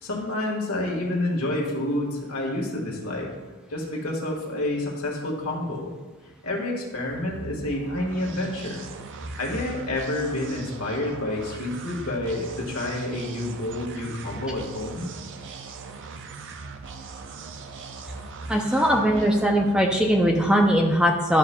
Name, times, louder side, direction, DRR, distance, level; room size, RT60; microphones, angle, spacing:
voice 1, 0.0-3.3 3.7-5.9 6.4-8.8 9.3-15.1, left 1 dB, 70° left, -1 dB, 1.6 m, -29 dB
sound 1, 7.0-20.8, right 4 dB, 55° right, 0.5 m, -40 dB
voice 2, 18.5-21.4, equal, 5° right, 1 dB, 0.5 m, -20 dB
11.5 x 5.7 x 2.2 m, 1.3 s
head